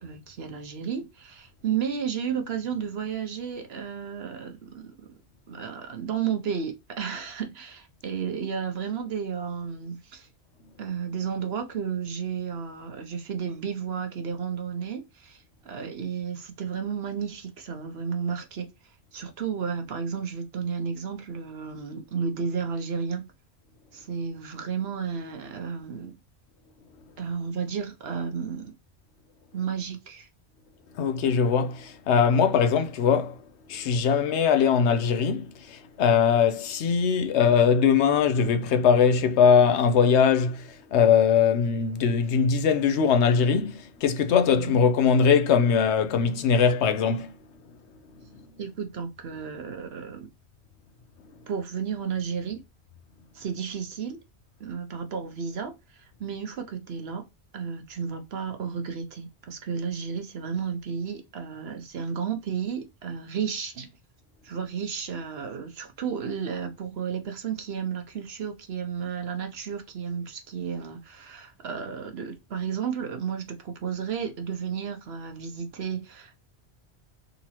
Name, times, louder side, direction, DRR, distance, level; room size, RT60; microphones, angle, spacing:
voice 1, 0.0-4.9 5.5-10.3 10.8-18.7 19.1-23.3 23.9-26.2 27.2-28.7 29.5-30.3 44.5-44.8 48.6-50.3 51.5-52.6 53.3-54.2 54.6-57.2 57.5-63.9 64.4-76.4, right 6 dB, 65° right, 1.1 m, -32 dB
voice 2, 31.0-33.4 33.7-47.3, left 6 dB, 80° left, 0.9 m, -21 dB
3.9 x 2.9 x 2.8 m
omnidirectional pair, 1.1 m